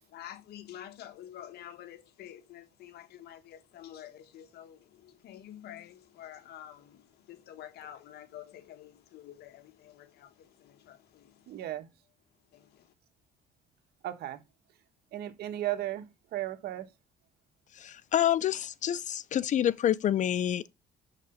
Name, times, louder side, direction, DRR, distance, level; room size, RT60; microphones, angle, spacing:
voice 1, 0.1-11.6 12.5-12.9, left 11 dB, 70° left, 1.3 m, -49 dB
voice 2, 11.5-11.9 14.0-14.4 15.1-16.9, right 14 dB, 70° right, 1.5 m, -35 dB
voice 3, 17.7-20.7, left 11 dB, 45° left, 0.5 m, -28 dB
6.9 x 5.9 x 5.6 m
cardioid pair, 110°, 17 cm